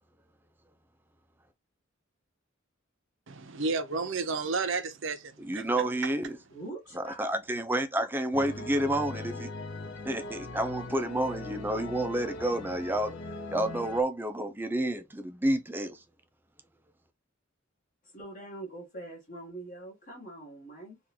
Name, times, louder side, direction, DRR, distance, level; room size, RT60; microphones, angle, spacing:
voice 1, 3.3-5.6, right 4 dB, 65° right, 0.7 m, -32 dB
voice 2, 5.4-6.4 6.9-9.5 10.0-13.2 13.5-16.0, right 1 dB, 10° right, 0.4 m, -30 dB
voice 3, 6.5-7.3 8.0-8.7 18.0-21.0, right 2 dB, 40° left, 1.1 m, -44 dB
sound 1, 8.3-14.0, left 2 dB, 65° left, 0.7 m, -40 dB
3.8 x 2.5 x 2.8 m
head